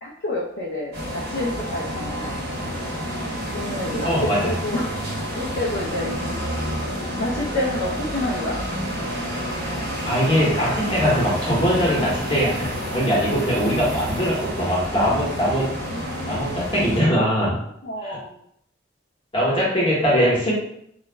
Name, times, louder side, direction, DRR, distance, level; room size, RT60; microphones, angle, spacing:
voice 1, 0.0-2.4 3.5-4.9 5.3-6.1 7.2-8.6 13.8-13.9 15.8-16.6 17.8-18.4, left 1 dB, 55° left, -5 dB, 0.4 m, -29 dB
sound 1, 0.9-17.0, equal, 55° right, 0.7 m, -29 dB
voice 2, 4.0-4.5 10.0-12.6 12.9-15.7 16.3-17.6 18.0-18.2 19.3-20.5, equal, 25° left, -5 dB, 0.8 m, -21 dB
2.3 x 2.0 x 3.1 m, 0.73 s
head